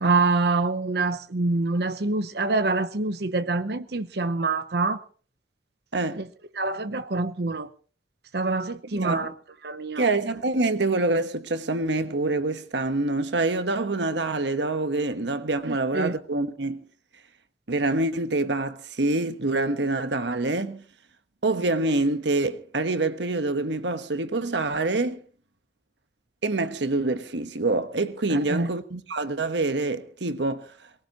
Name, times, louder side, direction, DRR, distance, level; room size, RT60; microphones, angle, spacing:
voice 1, 0.0-5.0 6.2-6.3 6.6-7.7 8.3-9.3 9.6-10.1 15.7-16.1 28.3-28.7, right 3 dB, 65° right, 0.8 m, -26 dB
voice 2, 5.9-6.2 8.9-9.3 10.0-16.8 17.7-20.8 21.4-25.2 26.4-30.7, right 2 dB, 80° right, 1.3 m, -26 dB
23.0 x 19.0 x 3.0 m
head